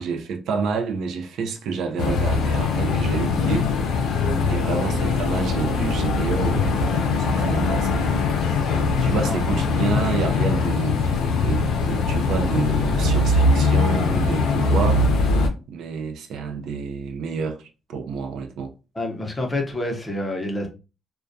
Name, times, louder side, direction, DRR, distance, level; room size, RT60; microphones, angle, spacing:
voice 1, 0.0-4.2 4.4-8.5 9.0-15.1 15.7-18.7, right 5 dB, 85° right, 0.4 m, -29 dB
sound 1, 2.0-15.5, left 3 dB, 90° left, 0.5 m, -21 dB
voice 2, 19.0-20.7, left 1 dB, 20° left, 0.7 m, -27 dB
2.2 x 2.2 x 2.6 m
cardioid pair, 90°, 0 cm